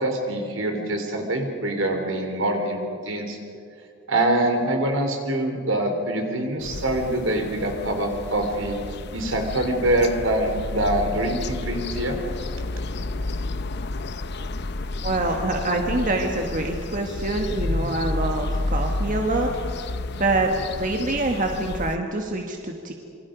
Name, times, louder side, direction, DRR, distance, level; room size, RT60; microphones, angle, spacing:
voice 1, 0.0-3.4 4.1-8.8 9.1-12.2, right 1 dB, 75° right, 4 dB, 3.5 m, -24 dB
sound 1, 6.6-22.0, left 2 dB, 55° left, 0.7 m, -31 dB
voice 2, 15.0-19.5 20.1-20.5 20.8-22.9, right 2 dB, 40° right, 2 dB, 1.6 m, -25 dB
27.0 x 24.0 x 5.2 m, 2.4 s
head